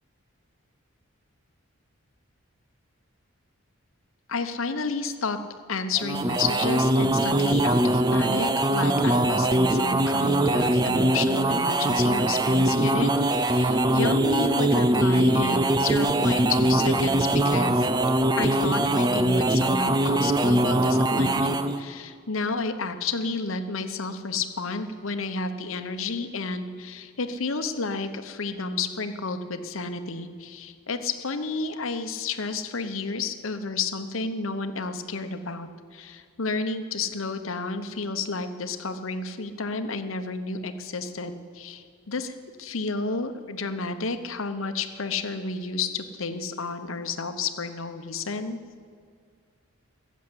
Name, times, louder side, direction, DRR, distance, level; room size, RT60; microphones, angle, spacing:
voice 1, 4.3-5.4 5.7-17.9 18.3-48.6, left 4 dB, 70° left, 9 dB, 1.0 m, -31 dB
sound 1, 6.0-21.8, right 1 dB, 20° right, 0.5 m, -22 dB
15.0 x 7.4 x 9.9 m, 2.1 s
head